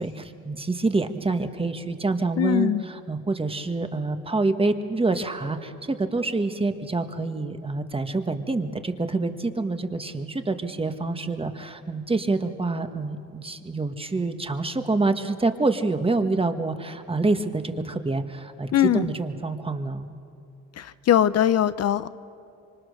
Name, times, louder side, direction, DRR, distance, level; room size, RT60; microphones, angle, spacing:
voice 1, 0.0-20.1, right 3 dB, 20° right, 8 dB, 1.5 m, -27 dB
voice 2, 2.4-2.8 18.7-19.1 20.8-22.1, left 10 dB, 55° left, 14 dB, 0.7 m, -21 dB
25.5 x 25.5 x 6.6 m, 2.5 s
cardioid pair, 90°, 30 cm